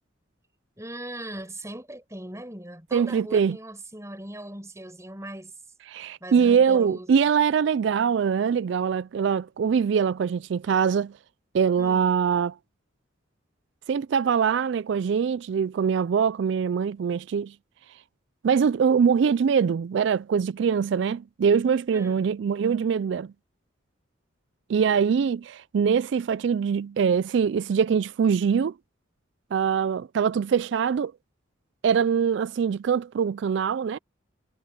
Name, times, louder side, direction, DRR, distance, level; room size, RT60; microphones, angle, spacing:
voice 1, 0.8-5.5 6.2-7.3 11.8-12.1 21.9-22.3, right 1 dB, 15° right, 7.6 m, -39 dB
voice 2, 2.9-3.6 5.9-11.1 11.5-12.5 13.9-17.5 18.4-23.3 24.7-28.7 29.5-31.1 31.8-34.0, right 6 dB, 60° right, 0.3 m, -23 dB
head